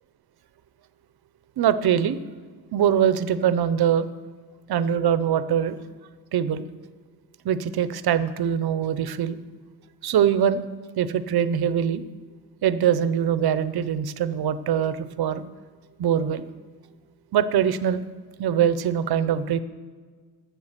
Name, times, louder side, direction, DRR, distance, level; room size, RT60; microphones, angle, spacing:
voice 1, 1.6-2.2 2.7-4.1 4.7-5.8 6.3-6.7 7.4-9.4 10.0-10.6 11.0-12.0 12.6-15.4 16.0-16.5 17.3-18.0 18.4-19.6, right 9 dB, 70° right, 14 dB, 0.7 m, -23 dB
12.0 x 7.0 x 7.4 m, 1.5 s
wide cardioid pair, 165°, 39 cm